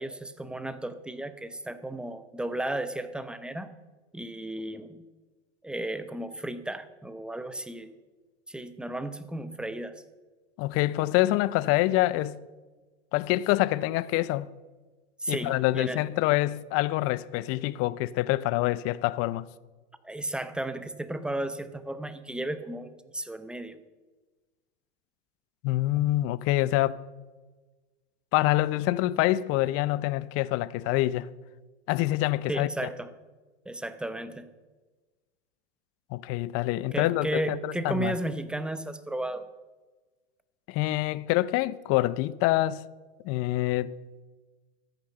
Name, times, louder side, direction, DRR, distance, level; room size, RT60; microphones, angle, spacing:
voice 1, 0.0-3.7 4.1-5.0 5.6-7.9 8.5-10.0 15.2-16.0 20.0-23.8 32.5-33.1 33.7-34.5 36.9-39.4, right 1 dB, 5° right, 0.9 m, -34 dB
voice 2, 10.6-12.4 13.1-14.5 15.3-19.5 25.6-27.0 28.3-31.3 31.9-32.7 36.1-38.2 40.7-42.9 43.2-43.9, left 17 dB, 45° left, 0.6 m, -26 dB
13.0 x 9.1 x 6.7 m
hypercardioid pair, 105°, 34 cm